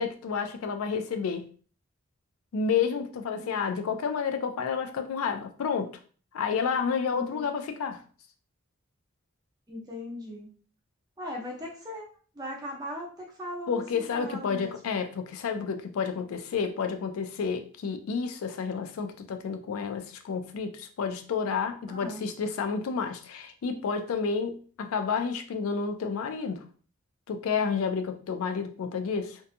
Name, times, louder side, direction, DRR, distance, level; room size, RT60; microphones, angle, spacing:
voice 1, 0.0-1.5 2.5-5.9 6.3-8.0 13.7-26.6 27.3-29.4, left 6 dB, 75° left, 0.3 m, -30 dB
voice 2, 7.1-7.5 9.7-10.5 11.2-12.1 12.3-14.7 21.9-22.3, left 1 dB, 15° right, 0.6 m, -39 dB
2.7 x 2.2 x 2.5 m
head